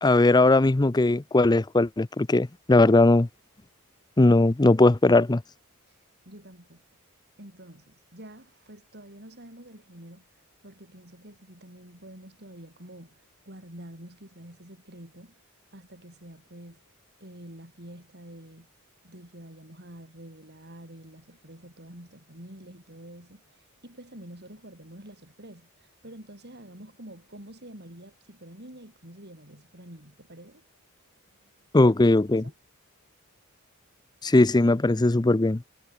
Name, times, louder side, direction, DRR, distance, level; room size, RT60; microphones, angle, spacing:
voice 1, 0.0-3.3 4.2-5.4 31.7-32.4 34.2-35.6, left 2 dB, 20° left, 0.5 m, -19 dB
voice 2, 6.3-6.8 7.4-10.2 10.6-15.4 15.7-16.8 17.2-18.7 19.0-30.6 31.2-31.5 32.3-32.5, right 1 dB, 50° right, 7.3 m, -47 dB
head